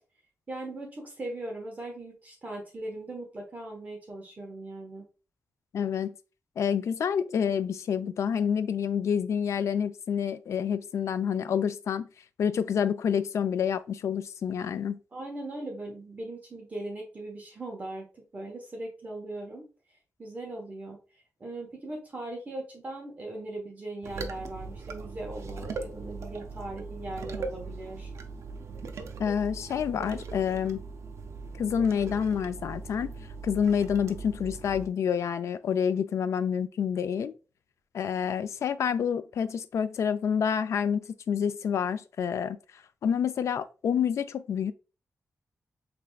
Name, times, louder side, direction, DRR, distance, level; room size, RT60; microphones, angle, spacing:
voice 1, 0.5-5.0 15.1-19.6 20.2-21.0 21.4-28.1, right 2 dB, 30° right, 1.2 m, -39 dB
voice 2, 5.7-6.1 6.6-12.1 12.4-15.0 29.2-30.8 31.6-33.1 33.4-37.3 37.9-42.6 43.0-44.7, left 7 dB, 70° left, 0.3 m, -28 dB
sound 1, 24.0-34.9, right 4 dB, 65° right, 0.5 m, -40 dB
5.0 x 3.3 x 2.3 m
wide cardioid pair, 160°, 5 cm